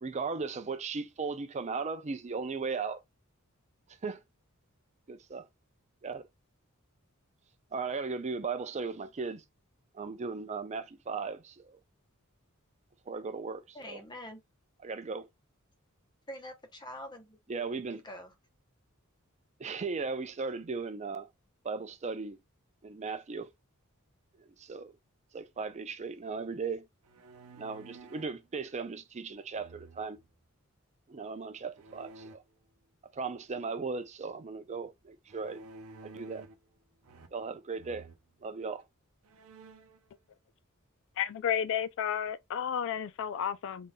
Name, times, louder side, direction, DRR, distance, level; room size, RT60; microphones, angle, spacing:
voice 1, 0.0-3.0 4.0-4.2 5.1-5.4 6.0-6.3 7.7-9.4 9.9-11.8 13.1-14.0 14.9-15.2 17.5-18.0 19.6-21.3 21.6-22.4 22.8-23.5 24.4-24.9 25.3-26.8 27.5-30.2 31.1-32.4 33.1-35.6 36.0-36.5 37.3-38.1 38.4-38.8, right 4 dB, 30° right, 0.5 m, -37 dB
voice 2, 13.7-14.4 16.3-17.4 18.0-18.3, left 1 dB, 20° left, 0.8 m, -44 dB
sound 1, 27.0-28.4 29.5-30.3 31.8-32.4 35.3-36.7 37.0-37.5 37.8-38.2 38.8-38.9 39.2-40.0, right 3 dB, 90° right, 0.6 m, -52 dB
voice 3, 41.2-43.9, left 8 dB, 60° left, 0.3 m, -32 dB
3.8 x 3.8 x 2.2 m
head